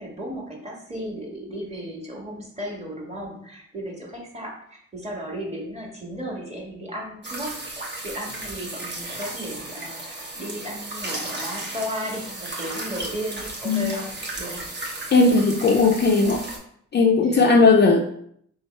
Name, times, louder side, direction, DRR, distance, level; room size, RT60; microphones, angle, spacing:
voice 1, 0.0-14.0 14.4-14.6 17.2-17.6, equal, 20° right, -2 dB, 1.6 m, -35 dB
sound 1, 7.2-16.6, right 2 dB, 35° right, 1.1 m, -34 dB
voice 2, 15.1-16.5 16.9-18.0, left 3 dB, 35° left, 2 dB, 0.5 m, -17 dB
3.3 x 3.1 x 4.4 m, 0.67 s
cardioid pair, 90°, 30 cm